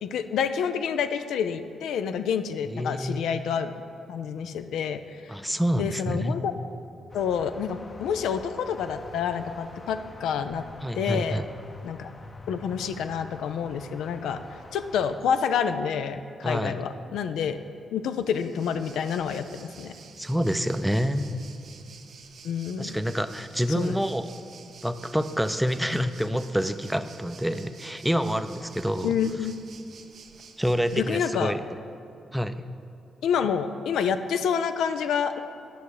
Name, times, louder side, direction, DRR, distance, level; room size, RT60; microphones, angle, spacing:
voice 1, 0.0-3.7 4.1-5.3 5.8-6.5 7.1-10.6 10.9-11.4 11.8-12.1 12.5-14.4 14.7-17.6 17.9-19.9 22.4-23.0 23.7-24.0 29.0-29.5 30.9-31.5 33.2-35.4, left 7 dB, 80° left, 9 dB, 0.3 m, -28 dB
voice 2, 2.7-3.2 5.3-6.3 10.8-11.5 16.4-16.8 20.2-21.3 22.8-24.2 24.8-29.1 30.6-31.6 32.3-32.5, equal, 5° right, 10 dB, 0.5 m, -27 dB
sound 1, 7.1-15.2, left 2 dB, 40° left, 0.7 m, -45 dB
Waves surf, 18.1-31.5, right 5 dB, 65° right, 0.6 m, -50 dB
9.1 x 5.4 x 4.9 m, 2.7 s
supercardioid pair, 50°, 0 cm